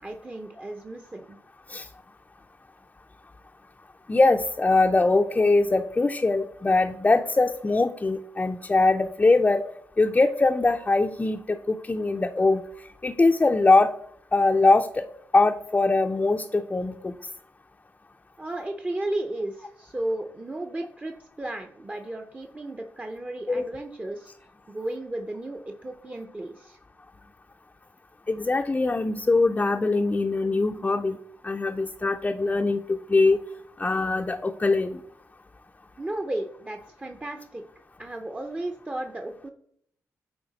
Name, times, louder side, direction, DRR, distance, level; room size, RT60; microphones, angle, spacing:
voice 1, 0.0-1.4 18.4-24.3 24.7-26.8 36.0-37.6 38.0-39.5, right 1 dB, 20° right, 4 dB, 0.6 m, -34 dB
voice 2, 4.1-9.6 10.0-12.6 13.0-13.9 14.3-15.0 15.3-17.1 23.5-23.6 28.3-31.2 31.4-33.4 33.8-35.0, left 3 dB, 20° left, 4 dB, 0.5 m, -22 dB
7.8 x 4.2 x 4.0 m, 0.67 s
cardioid pair, 65°, 6 cm